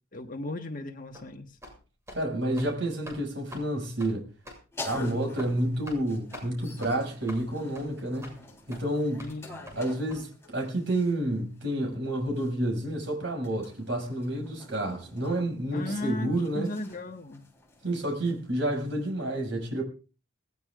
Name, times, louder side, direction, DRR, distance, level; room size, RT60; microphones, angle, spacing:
voice 1, 0.1-1.5 9.2-9.8 15.7-17.4, left 1 dB, 45° left, 4 dB, 1.5 m, -36 dB
sound 1, 1.1-1.3 1.6-1.8 2.1-2.2 2.5-2.7 3.1-3.2 3.5-3.7 4.0-4.1 4.5-4.6 4.9-5.1 5.4-5.5 5.9-6.0 6.3-6.5 6.8-6.9 7.3-7.4 7.8-7.9 8.2-8.4 8.7-8.8 9.2-9.3 9.7-9.8 10.1-10.2, equal, 15° right, 7.1 m, -44 dB
voice 2, 2.1-4.3 4.9-8.3 8.7-9.3 9.8-16.7 17.8-19.8, right 1 dB, 65° right, 1 dB, 6.4 m, -29 dB
sound 2, 4.7-11.3 12.3-19.1, left 2 dB, 15° left, 3.7 m, -47 dB
20.0 x 19.5 x 2.5 m, 0.35 s
head